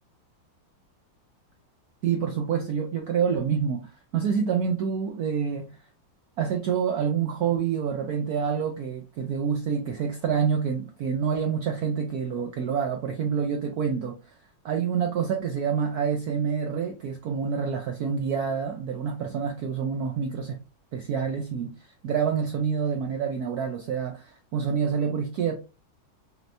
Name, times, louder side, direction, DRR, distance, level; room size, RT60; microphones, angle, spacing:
voice 1, 2.0-5.8 6.4-14.2 14.6-20.6 20.9-21.7 22.0-25.5, right 7 dB, 90° right, 0.8 m, -27 dB
4.3 x 3.2 x 2.6 m
omnidirectional pair, 2.3 m